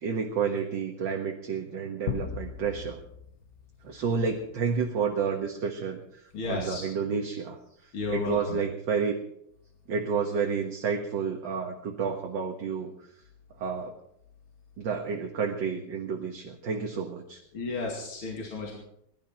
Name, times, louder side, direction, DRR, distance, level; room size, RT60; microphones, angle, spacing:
voice 1, 0.0-3.0 3.8-9.2 9.9-12.9 13.6-13.9 14.8-17.4, right 5 dB, 60° right, 2 dB, 2.1 m, -30 dB
sound 1, 2.1-4.6, left 7 dB, 50° left, 1.2 m, -38 dB
voice 2, 6.3-6.8 7.9-8.6 17.5-18.8, left 3 dB, 70° left, -1 dB, 3.3 m, -33 dB
21.0 x 12.0 x 4.5 m, 0.74 s
omnidirectional pair, 2.4 m